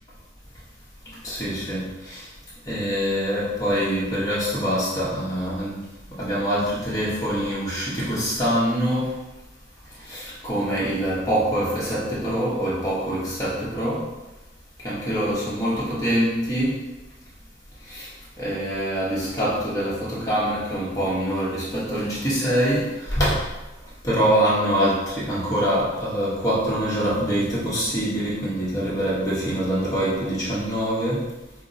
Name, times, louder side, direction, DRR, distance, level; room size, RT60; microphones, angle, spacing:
voice 1, 1.2-1.8 2.7-5.7 6.2-9.0 10.1-14.0 14.8-16.7 18.0-18.1 18.4-22.8 23.1-23.4 24.0-31.2, equal, 20° left, -8 dB, 1.1 m, -24 dB
5.1 x 2.1 x 2.6 m, 1.1 s
head